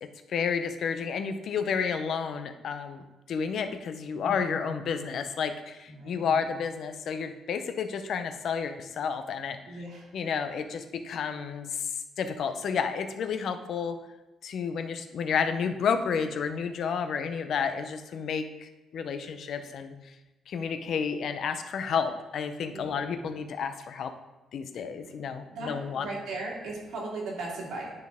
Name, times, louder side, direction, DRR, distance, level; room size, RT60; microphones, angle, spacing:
voice 1, 0.3-9.6 10.1-11.9 12.2-14.0 14.4-19.9 20.5-24.1 24.5-26.1, left 6 dB, 65° left, 9 dB, 0.6 m, -31 dB
voice 2, 4.2-5.1 5.9-6.4 9.7-10.1 22.7-23.3 25.5-27.9, right 2 dB, 80° right, -3 dB, 2.1 m, -38 dB
9.7 x 4.3 x 3.5 m, 1.1 s
cardioid pair, 90°, 0 cm